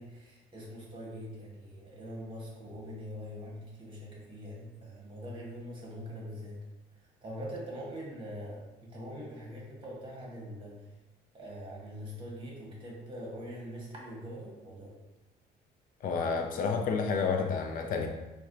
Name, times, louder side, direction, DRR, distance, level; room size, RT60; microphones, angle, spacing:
voice 1, 0.0-6.6 7.2-10.8 11.3-15.0, equal, 30° right, -3 dB, 1.1 m, -43 dB
voice 2, 16.0-18.1, left 5 dB, 55° left, 4 dB, 0.5 m, -30 dB
4.1 x 2.2 x 2.5 m, 1.1 s
cardioid pair, 110°, 17 cm